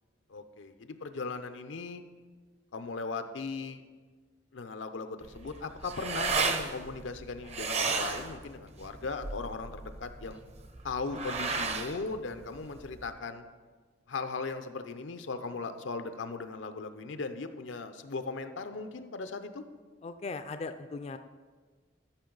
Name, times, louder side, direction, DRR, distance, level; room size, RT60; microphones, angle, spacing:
voice 1, 0.3-2.0 2.7-3.8 4.5-10.4 10.8-13.5 14.1-19.6, left 4 dB, 85° left, 9 dB, 0.6 m, -38 dB
sound 1, 5.2-13.1, right 4 dB, 35° right, 0.6 m, -34 dB
voice 2, 20.0-21.2, left 3 dB, 35° left, 9 dB, 0.3 m, -39 dB
13.0 x 5.9 x 3.9 m, 1.4 s
head